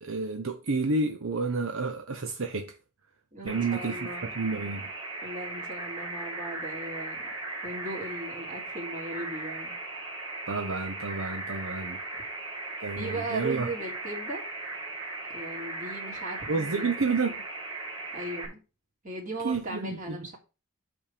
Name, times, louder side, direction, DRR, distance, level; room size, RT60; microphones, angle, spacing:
voice 1, 0.0-2.8 3.4-4.0 4.4-4.9 10.5-12.0 12.8-13.7 16.5-17.4 19.4-20.2, right 3 dB, 70° right, 0.9 m, -30 dB
voice 2, 3.3-4.3 5.2-7.2 7.6-9.7 13.0-14.4 15.3-16.9 18.1-18.6 19.0-20.4, right 2 dB, 35° right, 2.8 m, -37 dB
sound 1, 3.5-18.4, right 2 dB, 20° right, 2.3 m, -38 dB
8.5 x 3.6 x 6.6 m
head